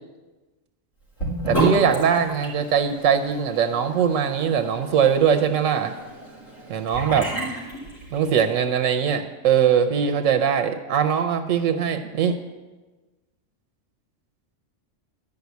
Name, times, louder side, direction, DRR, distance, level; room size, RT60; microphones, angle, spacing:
Sink (filling or washing) / Bathtub (filling or washing), 1.2-8.5, right 1 dB, 85° left, 3.5 m, -31 dB
voice 1, 1.5-5.9 6.7-7.3 8.1-12.4, right 7 dB, 90° right, 8 dB, 1.1 m, -21 dB
11.5 x 5.3 x 8.1 m, 1.2 s
omnidirectional pair, 1.3 m